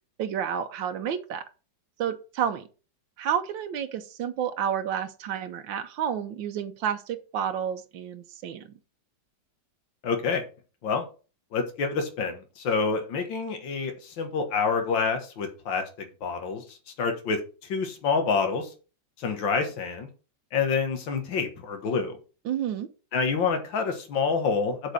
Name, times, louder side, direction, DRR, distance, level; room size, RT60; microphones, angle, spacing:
voice 1, 0.2-1.4 2.0-2.7 3.2-8.6 22.5-22.9, right 9 dB, 85° right, 7 dB, 1.5 m, -30 dB
voice 2, 10.0-10.4 10.8-11.1 11.5-18.7 19.2-20.1 20.5-22.2 23.1-24.9, left 5 dB, 85° left, 5 dB, 2.2 m, -27 dB
7.4 x 5.0 x 6.4 m, 0.35 s
omnidirectional pair, 2.0 m